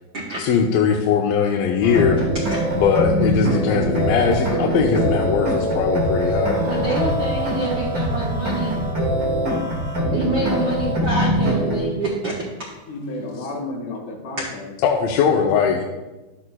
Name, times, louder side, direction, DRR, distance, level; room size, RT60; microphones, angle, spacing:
voice 1, 0.4-2.3 2.7-6.6 14.8-15.8, left 6 dB, 80° left, 0 dB, 2.3 m, -20 dB
sound 1, 1.8-11.8, equal, 35° right, 1.5 m, -22 dB
voice 2, 6.6-8.8 10.1-12.3, right 2 dB, 80° right, -4 dB, 1.0 m, -26 dB
voice 3, 12.9-14.7 15.4-15.6, left 1 dB, 60° left, 0 dB, 2.9 m, -31 dB
11.5 x 8.6 x 2.3 m, 1.1 s
omnidirectional pair, 4.2 m